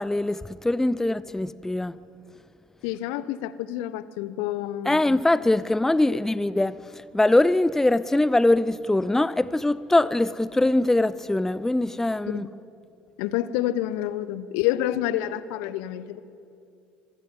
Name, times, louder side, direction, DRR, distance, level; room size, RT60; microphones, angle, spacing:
voice 1, 0.0-1.9 4.9-6.8 7.1-12.5, left 2 dB, 10° left, 0.6 m, -22 dB
voice 2, 2.8-5.0 6.1-6.2 12.3-12.5 13.2-16.2, left 13 dB, 60° left, 1.0 m, -28 dB
26.0 x 19.5 x 9.6 m
figure-of-eight pair, 60°, 5 cm